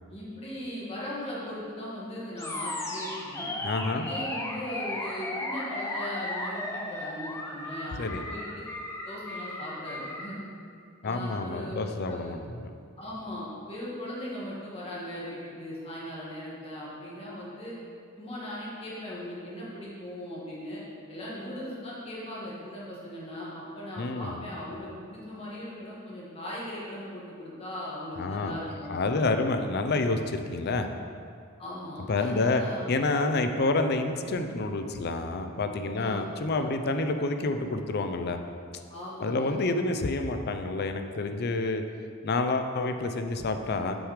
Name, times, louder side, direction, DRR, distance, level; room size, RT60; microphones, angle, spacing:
voice 1, 0.1-3.5 3.9-8.5 9.0-10.4 11.0-12.4 13.0-17.7 18.2-20.8 21.1-29.6 31.6-32.9 35.9-36.2 38.9-39.5, left 1 dB, 30° left, -6 dB, 1.7 m, -39 dB
Animal, 2.4-10.3, left 1 dB, 15° left, 0.8 m, -35 dB
voice 2, 3.6-4.1 8.0-8.3 11.0-12.7 24.0-24.4 28.2-28.6 28.9-30.9 32.1-32.6 32.9-38.4 39.2-41.8 42.2-44.0, left 3 dB, 50° left, 7 dB, 0.5 m, -28 dB
6.2 x 4.9 x 5.0 m, 2.3 s
head